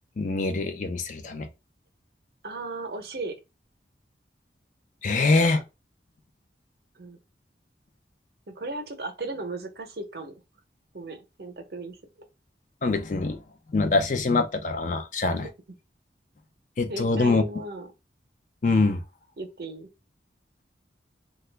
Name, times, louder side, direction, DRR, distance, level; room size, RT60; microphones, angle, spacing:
voice 1, 0.2-1.5 5.0-5.6 12.8-13.4 13.7-15.5 16.8-17.4 18.6-19.0, left 3 dB, 45° left, 0.4 m, -24 dB
voice 2, 2.4-3.4 5.1-5.6 6.9-7.2 8.6-10.4 10.9-12.0 15.3-15.5 16.9-17.9 19.4-19.9, right 2 dB, 60° right, 0.7 m, -36 dB
2.9 x 2.3 x 3.3 m
head